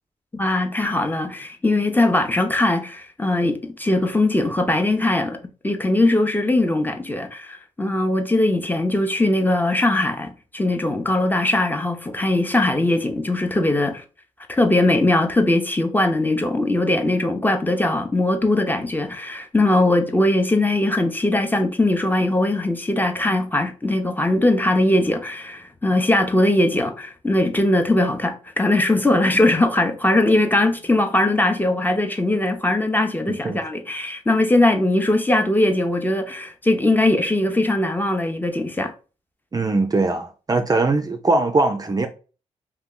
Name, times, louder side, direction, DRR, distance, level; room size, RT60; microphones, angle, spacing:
voice 1, 0.3-5.4 5.6-14.0 14.5-38.9, left 2 dB, 15° left, 0.7 m, -20 dB
voice 2, 33.3-33.6 39.5-42.1, right 3 dB, 30° right, 0.5 m, -21 dB
2.8 x 2.3 x 3.6 m
supercardioid pair, 50°, 14 cm